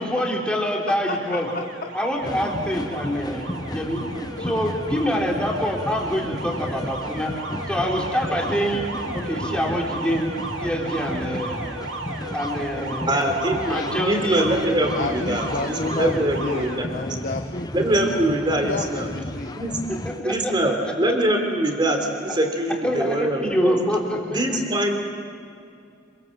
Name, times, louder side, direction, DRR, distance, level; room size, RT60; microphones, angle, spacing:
voice 1, 0.0-1.5 1.9-4.0 4.4-7.3 7.7-8.8 9.1-10.3 10.6-11.7 12.3-13.2 13.7-14.4 20.0-20.5 20.8-20.9 22.3-22.4 22.8-24.6, equal, 5° left, -2 dB, 4.2 m, -26 dB
voice 2, 0.9-1.2 1.8-1.9 4.4-4.5 13.6-14.2 14.9-18.2 18.6-19.5 20.1-20.4, left 3 dB, 45° left, 4 dB, 1.3 m, -31 dB
Alarm, 1.2-16.9, right 2 dB, 75° right, 2.5 m, -35 dB
sound 1, 2.2-20.2, left 1 dB, 20° left, 0.9 m, -34 dB
voice 3, 13.1-13.6 13.9-16.9 17.7-19.1 19.6-19.8 20.2-23.8 24.3-25.0, right 1 dB, 25° right, 4 dB, 3.6 m, -23 dB
27.0 x 24.5 x 7.7 m, 2.3 s
head